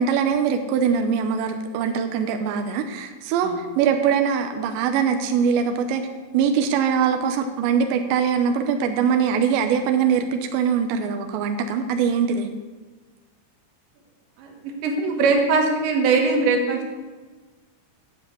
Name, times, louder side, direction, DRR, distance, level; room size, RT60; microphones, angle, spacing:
voice 1, 0.0-6.0 6.3-12.5, right 7 dB, 85° right, 6 dB, 2.6 m, -22 dB
voice 2, 14.4-16.9, right 4 dB, 65° right, 2 dB, 3.6 m, -21 dB
10.5 x 7.4 x 8.3 m, 1.3 s
omnidirectional pair, 5.9 m